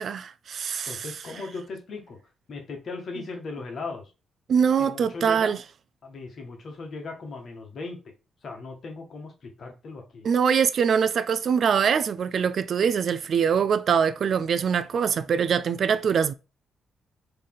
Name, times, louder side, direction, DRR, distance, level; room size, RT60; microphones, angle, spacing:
voice 1, 0.0-1.0 4.5-5.6 10.2-16.3, right 7 dB, 50° right, 0.4 m, -23 dB
voice 2, 0.8-2.2 2.5-4.1 4.8-5.6 6.0-8.1 8.4-10.3, left 3 dB, 50° left, 1.5 m, -38 dB
4.2 x 3.3 x 3.8 m
cardioid pair, 125°, 0 cm